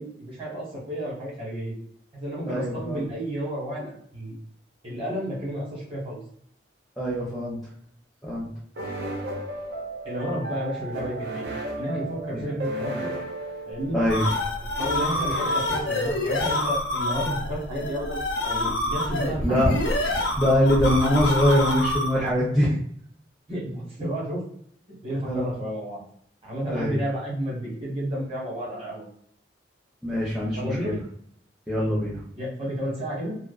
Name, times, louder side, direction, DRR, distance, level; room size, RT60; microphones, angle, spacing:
voice 1, 0.0-1.7 2.1-4.4 4.8-6.2 10.0-11.5 11.8-13.1 13.7-14.0 14.6-19.4 22.6-22.8 23.5-24.4 25.0-26.0 26.4-29.0 30.5-31.0 32.3-33.4, equal, 30° right, -5 dB, 1.1 m, -31 dB
voice 2, 2.5-3.0 7.0-7.6 8.2-8.5 12.3-12.4 13.9-14.3 19.4-19.8 20.4-22.7 25.3-25.5 26.7-27.0 30.0-30.9 31.7-32.2, equal, ahead, -7 dB, 0.5 m, -23 dB
sound 1, 8.8-16.4, right 1 dB, 60° right, 0.5 m, -35 dB
sound 2, 13.8-22.3, left 1 dB, 80° left, 0.6 m, -27 dB
2.3 x 2.3 x 2.3 m, 0.65 s
head